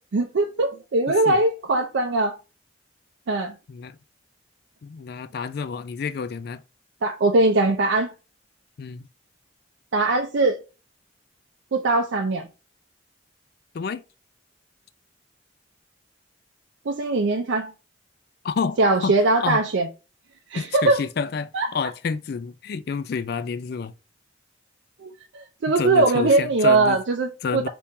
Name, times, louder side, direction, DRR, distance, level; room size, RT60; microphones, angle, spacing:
voice 1, 0.1-2.4 3.3-3.5 7.0-8.1 9.9-10.6 11.7-12.5 16.9-17.7 18.8-19.9 20.5-21.0 21.5-21.7 25.0-27.7, right 2 dB, 70° right, 0.5 m, -21 dB
voice 2, 1.1-1.4 3.7-3.9 4.8-6.6 8.8-9.1 13.7-14.0 18.4-19.6 20.6-23.9 25.8-27.0 27.4-27.7, left 5 dB, 55° left, 0.3 m, -29 dB
3.6 x 2.9 x 2.6 m
head